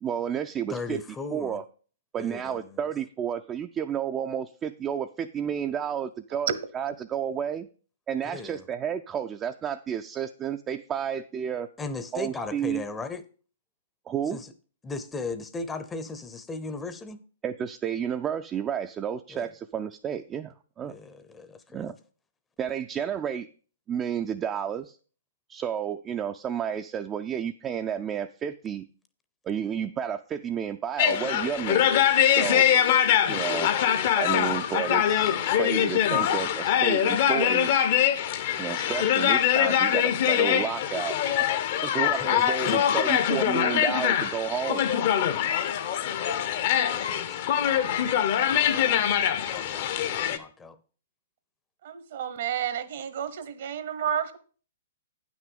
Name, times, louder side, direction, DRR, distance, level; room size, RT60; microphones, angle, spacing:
voice 1, 0.0-1.0 1.3-1.7 2.1-7.7 8.1-11.7 12.1-12.8 14.1-14.4 17.4-20.9 21.7-22.0 22.6-23.5 23.9-25.0 25.5-28.9 29.4-32.7 33.3-33.7 34.1-37.7 38.6-41.2 41.8-44.8, right 8 dB, 20° right, 0.4 m, -31 dB
voice 2, 0.7-1.6 2.2-2.8 8.2-8.6 11.8-13.2 14.3-14.5 14.8-17.2 19.3-19.5 20.8-21.9 33.1-33.4 42.1-42.8 46.8-48.1 48.8-50.8, left 3 dB, 15° left, 0.7 m, -38 dB
sound 1, 31.0-50.4, left 10 dB, 50° left, 0.8 m, -23 dB
voice 3, 51.8-54.4, right 9 dB, 60° right, 1.0 m, -31 dB
9.2 x 6.1 x 5.3 m
hypercardioid pair, 120°, 0 cm